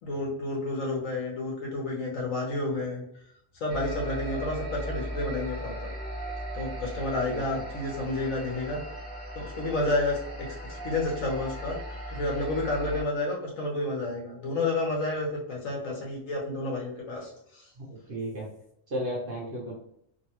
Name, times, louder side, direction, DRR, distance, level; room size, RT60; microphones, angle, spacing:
voice 1, 0.0-3.0 3.6-5.9 6.5-8.8 9.3-10.6 10.8-17.6, left 2 dB, 75° left, -2 dB, 1.3 m, -30 dB
sound 1, 3.7-13.0, right 1 dB, 10° left, 0.8 m, -37 dB
voice 2, 18.1-18.5 18.9-19.7, right 1 dB, 50° right, -3 dB, 0.9 m, -33 dB
3.0 x 2.2 x 2.8 m, 0.72 s
omnidirectional pair, 1.4 m